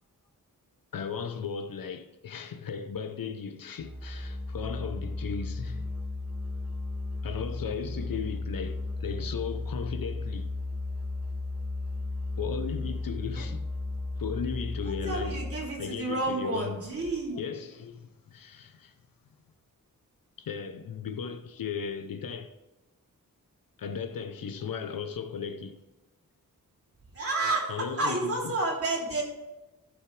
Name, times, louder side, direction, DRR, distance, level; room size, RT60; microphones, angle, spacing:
voice 1, 0.9-5.9 7.2-10.5 12.4-13.6 14.2-15.4 15.8-16.9 17.4-18.9 20.4-22.5 23.8-25.8 27.7-28.5 29.1-29.2, left 6 dB, 80° left, 0.9 m, -36 dB
Musical instrument, 3.8-15.8, left 2 dB, 5° right, 1.8 m, -35 dB
voice 2, 14.8-17.4 27.1-29.2, right 2 dB, 45° right, 3.2 m, -30 dB
15.0 x 6.3 x 3.4 m
wide cardioid pair, 140°, 34 cm